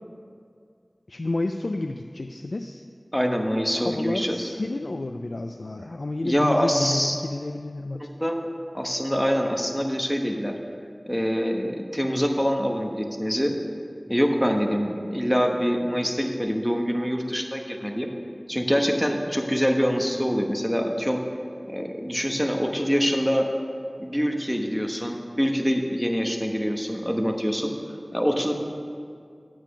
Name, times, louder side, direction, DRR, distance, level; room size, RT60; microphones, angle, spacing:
voice 1, 1.1-2.8 3.8-8.1, left 2 dB, 80° left, 5 dB, 0.3 m, -30 dB
voice 2, 3.1-4.5 6.2-7.2 8.0-8.4 8.7-10.5 11.1-13.6 14.1-18.1 18.5-21.2 21.7-23.5 24.0-27.7 28.1-28.5, equal, ahead, 2 dB, 1.0 m, -25 dB
8.7 x 7.5 x 6.0 m, 2.2 s
wide cardioid pair, 50°, 0 cm